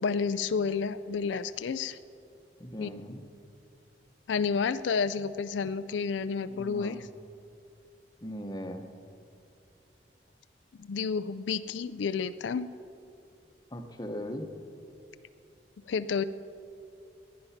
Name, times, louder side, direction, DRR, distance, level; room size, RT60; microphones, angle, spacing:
voice 1, 0.0-2.0 2.8-2.9 4.3-7.0 10.8-12.7 15.9-16.2, left 5 dB, 80° left, 13 dB, 0.4 m, -30 dB
voice 2, 2.6-3.3 6.5-7.1 8.2-8.9 13.7-14.6, equal, 20° left, 6 dB, 0.9 m, -39 dB
18.5 x 10.5 x 5.8 m, 2.6 s
head